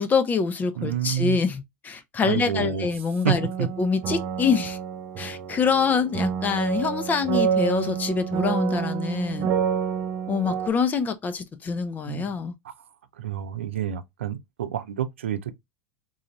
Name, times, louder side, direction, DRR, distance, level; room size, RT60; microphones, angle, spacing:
voice 1, 0.0-4.8 5.2-9.5 10.3-12.5, left 5 dB, 25° left, 0.7 m, -25 dB
voice 2, 0.8-1.4 2.2-2.9 3.2-3.7 12.1-12.3 13.2-15.5, right 9 dB, 90° right, 0.5 m, -28 dB
sound 1, 3.3-10.7, right 7 dB, 45° right, 0.5 m, -28 dB
3.9 x 2.6 x 3.0 m
hypercardioid pair, 100°, 7 cm